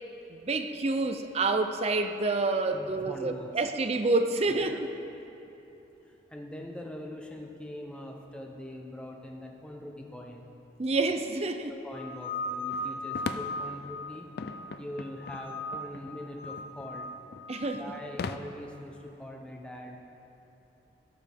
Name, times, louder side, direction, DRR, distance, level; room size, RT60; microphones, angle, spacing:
voice 1, 0.3-4.9 10.8-11.8 17.5-17.9, right 3 dB, 35° right, 8 dB, 0.5 m, -28 dB
voice 2, 2.7-3.5 4.5-4.8 6.3-10.4 11.7-14.3 14.8-17.1 17.6-20.0, left 1 dB, 5° left, 0 dB, 0.8 m, -42 dB
sound 1, 11.9-14.8 15.2-16.0 16.3-17.9, left 2 dB, 35° left, 1.3 m, -38 dB
sound 2, 12.7-18.4, left 4 dB, 55° left, 0.4 m, -41 dB
16.5 x 6.7 x 3.5 m, 3.0 s
head